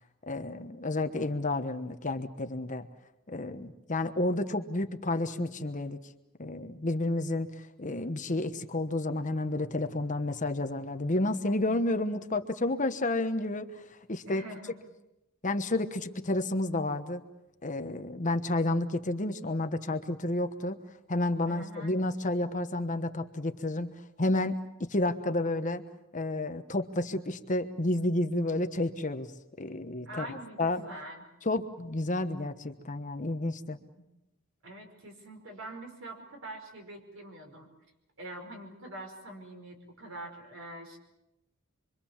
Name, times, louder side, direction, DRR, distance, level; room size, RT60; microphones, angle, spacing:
voice 1, 0.3-2.9 3.3-6.0 6.4-14.4 15.4-17.2 17.6-20.8 21.1-25.8 26.1-29.3 29.6-30.8 31.4-33.8, left 2 dB, 35° left, 8 dB, 1.2 m, -31 dB
voice 2, 14.2-14.8 21.5-22.0 30.1-31.2 33.7-34.0 34.6-37.7 38.2-41.0, right 1 dB, 60° right, 4 dB, 5.2 m, -44 dB
25.5 x 25.0 x 7.3 m, 0.90 s
head